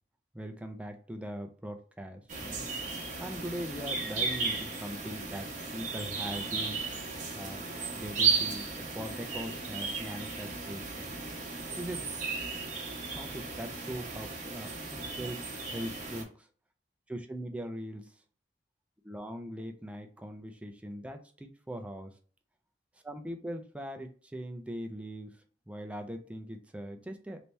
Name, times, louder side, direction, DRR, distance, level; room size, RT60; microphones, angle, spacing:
voice 1, 0.3-2.7 3.2-6.8 7.3-7.6 7.9-11.1 11.8-12.1 13.1-15.4 15.7-16.5 17.1-18.0 19.0-22.1 23.0-25.3 25.7-27.4, equal, 5° right, 5 dB, 0.4 m, -41 dB
sound 1, 2.3-16.2, right 4 dB, 45° right, 0.9 m, -35 dB
3.3 x 2.8 x 3.1 m, 0.42 s
head